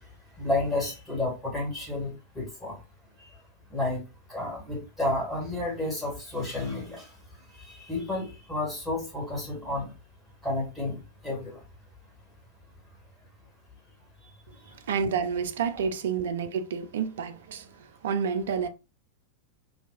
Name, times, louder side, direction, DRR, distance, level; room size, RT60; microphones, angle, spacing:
voice 1, 0.4-2.8 3.2-3.3 3.7-4.0 4.3-7.1 7.6-9.9 10.4-11.0 11.2-11.6, left 2 dB, 5° left, 2.1 m, -31 dB
voice 2, 14.7-18.7, right 6 dB, 60° right, 0.4 m, -29 dB
4.5 x 2.7 x 2.5 m
figure-of-eight pair, 90°, 0 cm